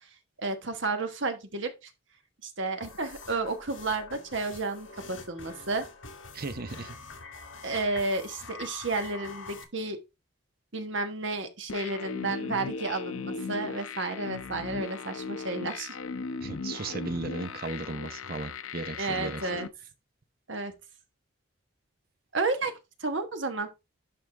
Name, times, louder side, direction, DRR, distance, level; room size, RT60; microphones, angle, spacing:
voice 1, 0.4-1.9 2.4-5.8 7.6-10.0 10.7-16.0 19.0-19.7 20.5-20.7 22.3-22.7 23.0-23.7, right 3 dB, 65° right, 1.3 m, -32 dB
sound 1, 2.8-9.6, left 3 dB, 70° left, 1.7 m, -45 dB
voice 2, 6.3-7.0 16.4-19.5, right 3 dB, 45° right, 0.8 m, -36 dB
sound 2, 11.7-19.7, left 4 dB, 90° left, 0.6 m, -38 dB
11.0 x 3.8 x 3.4 m
head